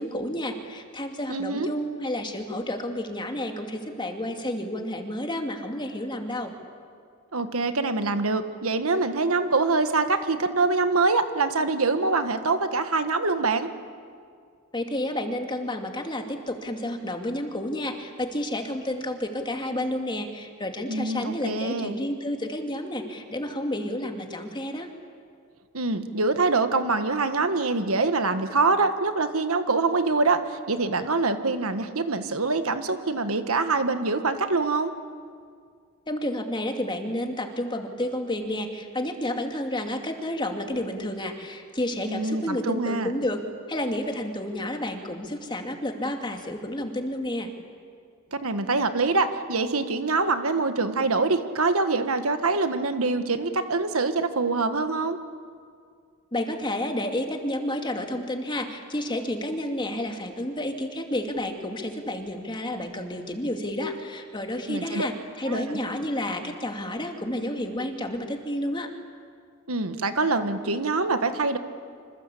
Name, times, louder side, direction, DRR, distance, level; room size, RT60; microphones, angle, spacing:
voice 1, 0.0-6.5 14.7-24.9 36.1-43.4 43.7-47.5 56.3-68.9, left 1 dB, 20° left, 4 dB, 2.5 m, -30 dB
voice 2, 1.3-1.7 7.3-13.7 20.9-22.0 25.7-34.9 42.0-43.1 48.3-55.2 64.7-65.1 65.5-65.8 69.7-71.6, right 3 dB, 80° right, 9 dB, 1.6 m, -25 dB
26.5 x 26.5 x 8.5 m, 2.1 s
head